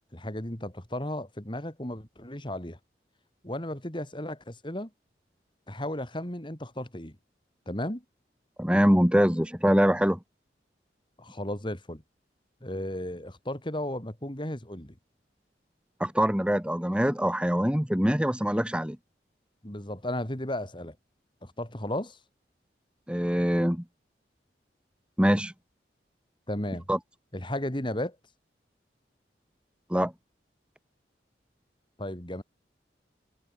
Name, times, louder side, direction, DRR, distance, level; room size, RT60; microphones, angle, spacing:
voice 1, 0.1-2.8 3.4-4.9 5.7-7.2 7.7-8.0 11.2-12.0 12.6-14.9 19.6-21.0 21.4-22.2 26.5-26.9 27.3-28.2 32.0-32.4, left 1 dB, 25° left, 3.5 m, -34 dB
voice 2, 8.6-10.2 16.0-19.0 23.1-23.8 25.2-25.5 26.9-27.0 29.9-30.1, equal, 5° right, 1.9 m, -24 dB
head